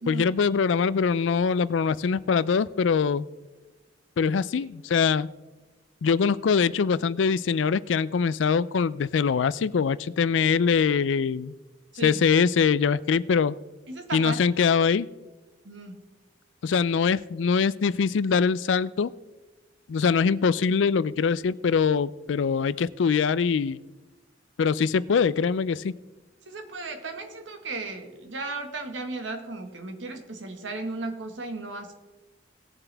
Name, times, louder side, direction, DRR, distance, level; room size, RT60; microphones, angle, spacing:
voice 1, 0.1-3.3 4.2-5.3 6.0-11.5 12.0-13.6 14.1-15.1 16.6-19.1 19.9-23.8 24.6-25.9, left 6 dB, 85° left, 18 dB, 0.4 m, -23 dB
voice 2, 13.9-14.6 15.6-15.9 26.5-31.9, right 3 dB, 85° right, 5 dB, 1.6 m, -35 dB
18.5 x 7.1 x 3.4 m, 1.1 s
head